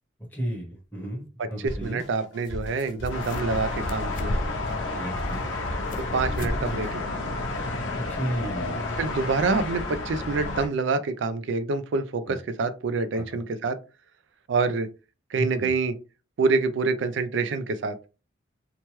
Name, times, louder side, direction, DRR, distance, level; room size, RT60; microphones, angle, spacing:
voice 1, 0.3-1.2 1.5-2.0 5.0-5.4 8.1-9.0 13.3-13.4 15.4-15.7, right 1 dB, 10° left, 0.9 m, -32 dB
sound 1, 0.7-0.8 2.4-2.5 2.8-3.6 3.9-4.7 5.2-6.1 6.4-6.6 6.9-7.0 7.6-7.7, left 1 dB, 45° left, 0.3 m, -34 dB
voice 2, 1.4-4.3 6.0-7.3 9.0-13.8 14.5-14.9 15.3-16.0 16.4-18.0, right 4 dB, 65° right, 0.4 m, -26 dB
Drum kit, 1.7-7.0, equal, 65° left, 1.1 m, -37 dB
sound 2, 3.1-10.7, left 2 dB, 85° left, 0.8 m, -31 dB
2.9 x 2.2 x 3.0 m
head